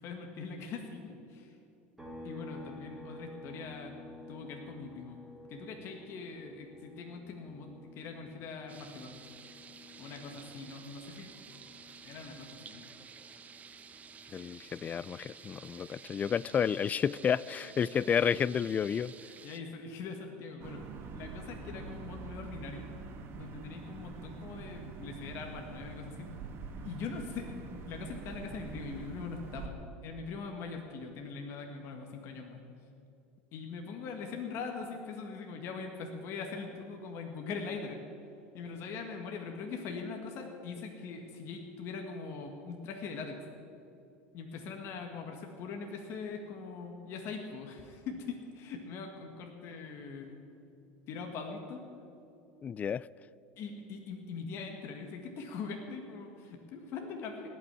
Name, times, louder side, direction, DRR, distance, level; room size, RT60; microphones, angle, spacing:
voice 1, 0.0-1.6 2.2-3.9 4.3-5.2 5.5-9.2 10.0-11.3 12.0-12.9 17.9-18.0 19.4-20.8 21.1-22.9 23.3-26.3 26.8-29.7 30.0-32.6 33.5-38.0 38.5-43.4 44.3-50.4 51.1-51.8 53.6-57.5, left 5 dB, 55° left, 3 dB, 1.8 m, -42 dB
sound 1, 2.0-15.5 15.9-18.1, left 2 dB, 5° right, 3.4 m, -53 dB
sound 2, 8.7-19.6, right 6 dB, 30° right, 0.8 m, -52 dB
voice 2, 14.3-19.1 52.6-53.1, left 7 dB, 30° left, 22 dB, 0.3 m, -31 dB
sound 3, 20.6-29.7, right 4 dB, 50° right, 1.7 m, -45 dB
18.5 x 6.2 x 9.7 m, 2.6 s
supercardioid pair, 105°, 5 cm